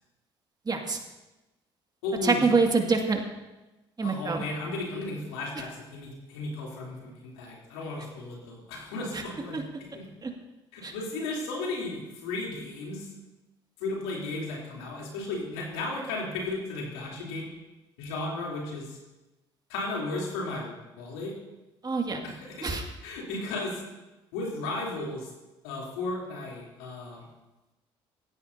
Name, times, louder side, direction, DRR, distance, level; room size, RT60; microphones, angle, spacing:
voice 1, 0.7-1.0 2.2-3.2 4.0-4.4 9.1-9.2 9.5-9.6 10.2-10.3 10.8-10.9 21.8-22.2 22.6-22.8, right 4 dB, 30° right, 2 dB, 2.2 m, -25 dB
voice 2, 2.0-2.4 4.0-10.1 10.7-13.1 13.8-17.5 18.0-19.0 19.7-21.3 22.2-22.7 23.0-23.8 24.3-25.3 25.6-27.2, left 2 dB, 85° left, -3 dB, 3.4 m, -35 dB
16.5 x 14.5 x 2.8 m, 1.0 s
hypercardioid pair, 55°, 13 cm